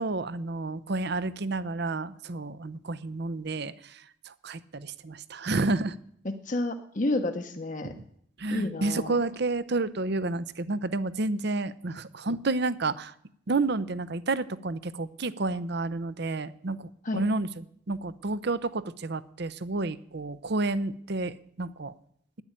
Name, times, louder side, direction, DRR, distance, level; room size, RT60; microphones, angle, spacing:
voice 1, 0.0-3.7 4.4-5.9 7.8-8.0 8.4-13.1 13.5-16.8 17.1-17.5 17.9-21.3 21.6-21.9, right 3 dB, 55° right, 15 dB, 0.7 m, -30 dB
voice 2, 6.2-7.9 8.5-9.2 17.0-17.2, left 2 dB, 40° left, 5 dB, 1.0 m, -30 dB
12.5 x 10.5 x 8.8 m, 0.68 s
head